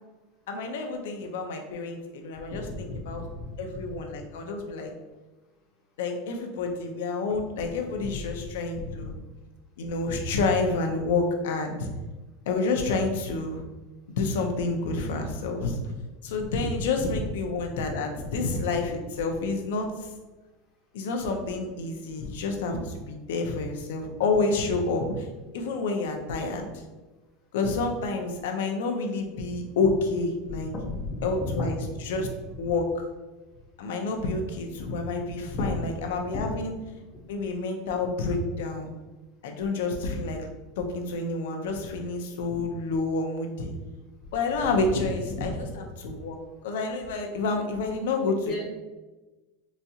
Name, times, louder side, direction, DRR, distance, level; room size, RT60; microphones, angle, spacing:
voice 1, 0.5-3.2 3.6-4.9 6.0-9.1 9.8-11.9 12.5-13.6 14.2-15.8 16.2-20.1 20.9-25.3 25.5-26.7 27.5-30.7 31.2-32.3 32.6-33.0 33.8-36.8 37.3-38.9 39.4-40.5 40.8-43.7 44.3-46.4 46.6-48.5, left 3 dB, 85° left, 4 dB, 0.6 m, -29 dB
voice 2, 2.9-3.8 8.1-8.5 8.8-8.9 22.2-22.3 30.9-31.6 35.5-35.8 36.3-36.5 44.9-45.0 45.4-45.7 48.4-48.6, left 3 dB, 30° left, -6 dB, 0.6 m, -33 dB
4.0 x 2.4 x 2.7 m, 1.1 s
supercardioid pair, 165°, 0 cm